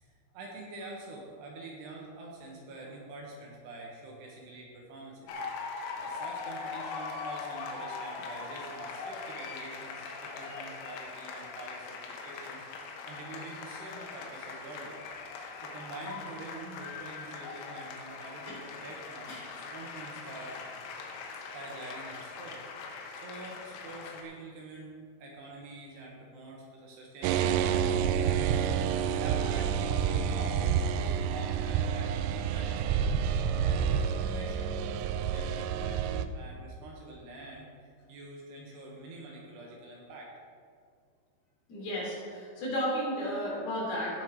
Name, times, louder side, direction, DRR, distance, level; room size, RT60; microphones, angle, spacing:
voice 1, 0.0-5.4 6.0-15.0 15.6-19.4 19.7-20.6 21.5-24.9 25.2-33.0 33.5-34.8 35.1-40.3, right 2 dB, 70° right, -1 dB, 3.1 m, -46 dB
sound 1, 5.3-24.2, left 4 dB, 80° left, 3.5 m, -41 dB
sound 2, 27.2-36.3, right 8 dB, 85° right, 2.5 m, -29 dB
voice 2, 41.7-44.2, equal, 55° left, -5 dB, 4.7 m, -33 dB
16.5 x 6.5 x 4.7 m, 2.2 s
omnidirectional pair, 5.5 m